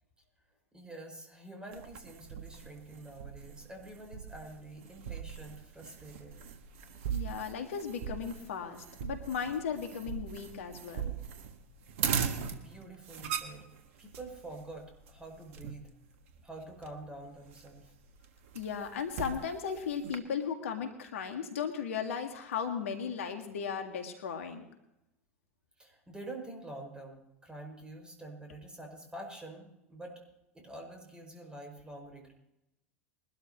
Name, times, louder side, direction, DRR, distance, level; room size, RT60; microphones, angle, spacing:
voice 1, 0.7-6.4 12.4-13.7 14.0-15.9 16.4-17.9 25.8-30.2 30.5-32.3, right 2 dB, 10° right, 2 dB, 5.7 m, -47 dB
sound 1, 1.7-20.2, right 7 dB, 65° right, 1.6 m, -40 dB
voice 2, 7.1-11.1 18.5-24.7, left 7 dB, 75° left, 6 dB, 1.8 m, -36 dB
22.0 x 12.5 x 3.0 m, 0.87 s
hypercardioid pair, 85°, 7 cm